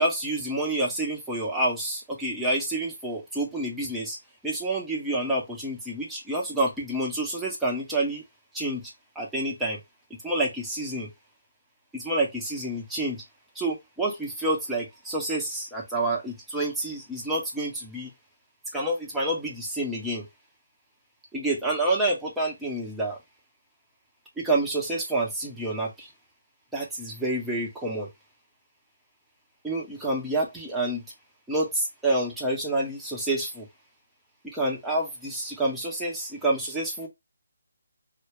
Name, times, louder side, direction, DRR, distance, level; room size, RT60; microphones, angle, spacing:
voice 1, 0.0-4.2 4.4-8.2 8.5-8.8 9.2-9.8 10.2-11.1 11.9-13.2 13.5-18.1 18.7-20.3 21.3-23.2 24.4-26.1 26.7-28.1 29.6-31.0 31.5-33.7 34.4-37.1, right 2 dB, 5° right, 0.6 m, -28 dB
2.2 x 2.2 x 3.4 m
figure-of-eight pair, 150°, 0 cm